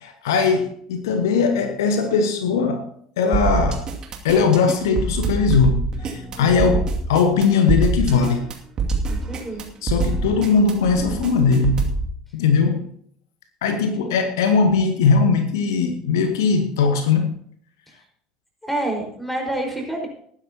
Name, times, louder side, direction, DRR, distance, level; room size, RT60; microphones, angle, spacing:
voice 1, 0.0-2.9 3.2-3.9 4.2-8.5 9.8-11.9 12.3-12.9 13.6-17.3, left 5 dB, 65° left, 7 dB, 1.2 m, -19 dB
sound 1, 3.3-12.1, right 4 dB, 35° right, 2.4 m, -24 dB
voice 2, 6.3-6.9 9.1-9.6 13.8-14.2 18.6-20.1, right 1 dB, 5° left, 2 dB, 4.9 m, -29 dB
19.0 x 10.0 x 2.9 m, 0.62 s
figure-of-eight pair, 65°, 2 cm